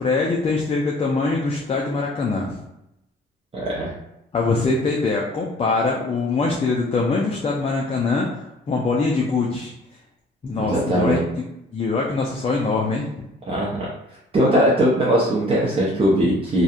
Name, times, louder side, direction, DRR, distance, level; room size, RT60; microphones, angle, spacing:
voice 1, 0.0-2.6 4.3-8.3 8.7-9.7 10.4-11.2 11.7-13.1, left 3 dB, 30° left, -1 dB, 0.4 m, -23 dB
voice 2, 3.5-3.9 10.5-11.2 13.5-13.9 14.3-16.6, right 1 dB, 30° right, -6 dB, 0.6 m, -20 dB
2.7 x 2.2 x 2.4 m, 0.85 s
cardioid pair, 90°, 20 cm